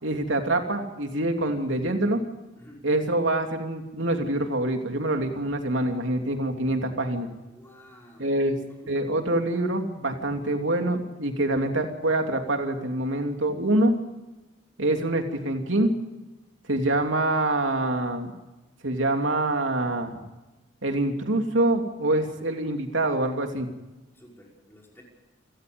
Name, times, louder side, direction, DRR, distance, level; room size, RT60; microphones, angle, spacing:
voice 1, 0.0-2.2 2.8-7.3 8.2-8.6 8.9-13.9 14.8-15.9 16.7-18.3 18.8-20.1 20.8-23.7, right 1 dB, 90° right, 4 dB, 3.0 m, -25 dB
voice 2, 2.6-2.9 7.5-8.3 8.8-9.0 24.1-25.0, equal, 15° left, -2 dB, 5.8 m, -51 dB
28.5 x 17.5 x 5.3 m, 1.1 s
head